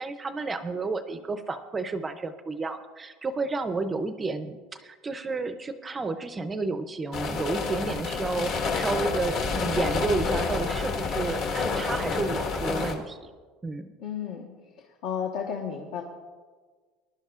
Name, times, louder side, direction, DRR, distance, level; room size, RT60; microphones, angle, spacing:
voice 1, 0.0-13.2 13.6-13.9, right 3 dB, 15° right, 9 dB, 0.5 m, -31 dB
sound 1, 7.1-12.9, left 4 dB, 45° left, 1.4 m, -29 dB
voice 2, 14.0-14.5 15.0-16.0, left 7 dB, 65° left, 0 dB, 1.2 m, -32 dB
20.5 x 11.5 x 2.4 m, 1.5 s
cardioid pair, 160°, 0 cm